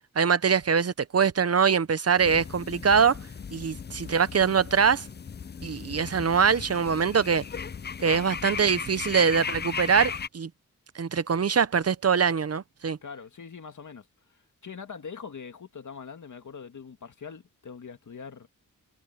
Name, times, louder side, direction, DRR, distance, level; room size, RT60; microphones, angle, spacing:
voice 1, 0.2-3.2 3.5-5.1 5.6-7.4 8.0-10.5 10.9-13.0, right 6 dB, 45° right, 0.7 m, -23 dB
sound 1, 2.2-10.3, left 6 dB, 30° left, 0.4 m, -37 dB
voice 2, 13.0-18.5, left 6 dB, 60° left, 2.1 m, -43 dB
wide cardioid pair, 155°, 34 cm